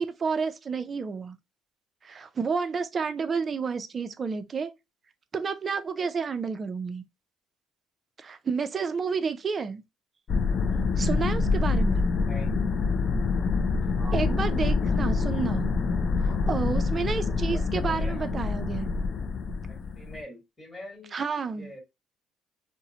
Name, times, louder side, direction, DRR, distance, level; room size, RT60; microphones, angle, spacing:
voice 1, 0.0-1.4 2.0-4.7 5.3-7.0 8.2-9.8 11.0-12.1 14.1-15.7 16.2-18.9 21.1-21.7, right 5 dB, 35° right, 0.4 m, -30 dB
sound 1, 10.3-20.2, left 4 dB, 45° left, 0.3 m, -26 dB
voice 2, 12.2-12.5 14.0-14.2 17.5-18.3 19.9-21.2 21.5-21.8, left 1 dB, 15° left, 1.4 m, -44 dB
2.5 x 2.0 x 2.7 m
cardioid pair, 100°, 0 cm